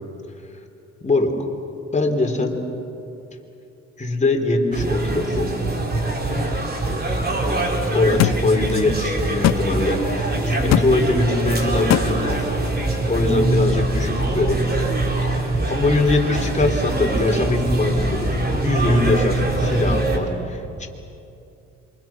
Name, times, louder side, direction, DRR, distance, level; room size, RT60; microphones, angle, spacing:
voice 1, 1.0-1.3 1.9-2.6 4.0-5.5 7.9-12.5 13.1-14.7 15.2-20.9, left 2 dB, 25° left, 2 dB, 3.7 m, -22 dB
sound 1, 4.7-20.2, right 2 dB, 30° right, 3.7 m, -23 dB
sound 2, 8.2-8.4 9.4-9.6 10.7-10.9 11.9-12.1, left 14 dB, 60° left, 0.5 m, -17 dB
28.0 x 24.5 x 6.0 m, 2.7 s
cardioid pair, 90°, 30 cm